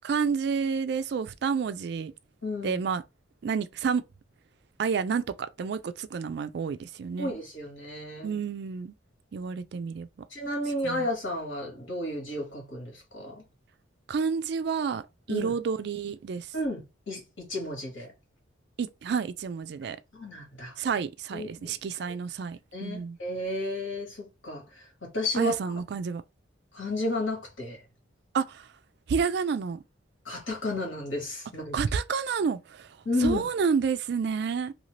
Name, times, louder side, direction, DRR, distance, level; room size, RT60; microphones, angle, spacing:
voice 1, 0.0-2.1 2.6-3.0 3.4-4.0 4.8-7.4 8.2-8.9 9.3-10.1 10.8-11.1 14.1-15.0 15.3-16.5 18.8-20.0 20.8-23.2 25.3-26.2 28.3-28.7 29.1-29.8 31.7-34.7, right 6 dB, 55° right, 0.3 m, -29 dB
voice 2, 2.4-2.8 7.2-8.4 10.3-13.4 15.3-15.5 16.5-18.1 20.1-20.7 21.3-22.1 22.7-25.5 26.7-27.8 30.2-31.8 33.0-33.4, left 1 dB, 85° left, 1.6 m, -32 dB
2.8 x 2.6 x 3.1 m
head